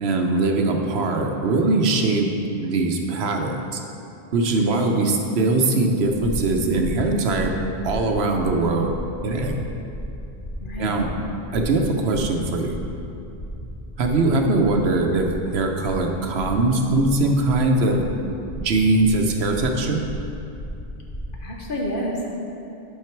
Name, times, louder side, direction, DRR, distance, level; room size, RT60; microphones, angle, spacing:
voice 1, 0.0-2.3 2.6-3.8 4.3-7.5 7.8-8.9 9.2-9.6 10.8-11.1 11.5-12.8 14.0-15.3 15.5-18.0 18.6-20.0, right 2 dB, 85° right, 3 dB, 1.0 m, -21 dB
voice 2, 4.6-5.1 10.6-11.0 14.5-14.6 21.4-22.3, equal, 55° left, -2 dB, 1.3 m, -30 dB
sound 1, 6.2-21.5, equal, 35° left, 0.8 m, -34 dB
8.9 x 5.8 x 4.5 m, 2.7 s
omnidirectional pair, 1.1 m